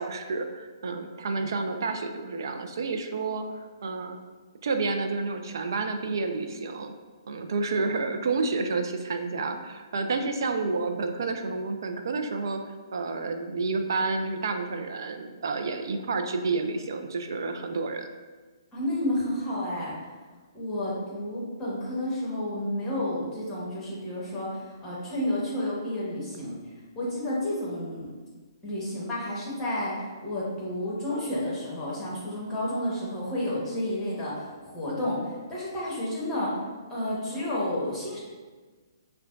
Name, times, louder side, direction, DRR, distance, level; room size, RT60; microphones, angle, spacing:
voice 1, 0.0-4.2 4.6-6.9 7.3-12.6 12.9-18.1, right 3 dB, 65° right, 6 dB, 0.4 m, -30 dB
voice 2, 18.7-20.1 20.5-26.6 26.9-28.1 28.6-36.6 36.9-38.2, left 1 dB, 15° left, -7 dB, 1.2 m, -31 dB
5.4 x 2.2 x 2.5 m, 1.4 s
figure-of-eight pair, 130°, 2 cm